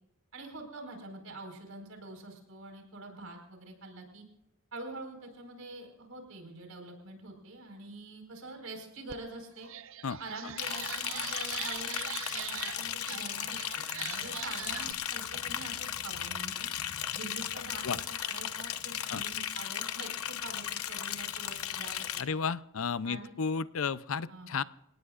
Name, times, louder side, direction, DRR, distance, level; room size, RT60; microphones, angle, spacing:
voice 1, 0.3-4.2 4.7-9.7 10.2-16.7 17.1-22.4 23.0-23.3 24.3-24.5, right 2 dB, 75° right, 4 dB, 4.7 m, -46 dB
sound 1, 9.1-9.2 9.6-14.9, right 10 dB, 60° right, 0.6 m, -41 dB
Liquid, 10.6-22.2, left 10 dB, 90° left, 0.9 m, -36 dB
voice 2, 22.2-24.6, left 5 dB, 70° left, 16 dB, 0.6 m, -33 dB
28.5 x 18.5 x 2.5 m, 0.84 s
head